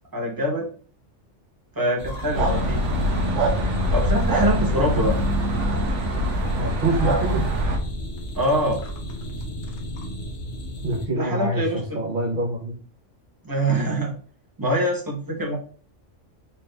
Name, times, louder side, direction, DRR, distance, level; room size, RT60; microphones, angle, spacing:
voice 1, 0.1-0.7 1.7-2.8 3.9-5.1 7.2-7.3 8.4-8.8 11.2-12.0 13.4-14.1 14.6-15.6, right 1 dB, 20° right, -1 dB, 0.9 m, -24 dB
sound 1, 2.0-11.1, equal, 65° left, 1.1 m, -32 dB
sound 2, 2.3-7.8, equal, 70° right, 1.0 m, -23 dB
voice 2, 6.6-7.5 10.8-11.6 11.9-12.7, right 2 dB, 45° right, -3 dB, 0.9 m, -25 dB
4.1 x 2.5 x 3.3 m, 0.41 s
omnidirectional pair, 1.3 m